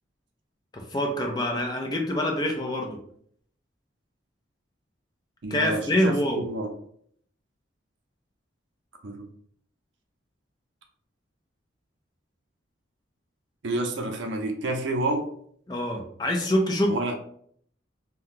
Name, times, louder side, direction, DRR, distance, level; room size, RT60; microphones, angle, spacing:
voice 1, 0.7-3.0 5.5-6.5 15.7-17.0, left 1 dB, 20° left, 2 dB, 0.4 m, -25 dB
voice 2, 5.4-6.7 9.0-9.3 13.6-15.3 16.9-17.1, right 2 dB, 70° right, 3 dB, 0.5 m, -29 dB
2.7 x 2.2 x 3.7 m, 0.63 s
head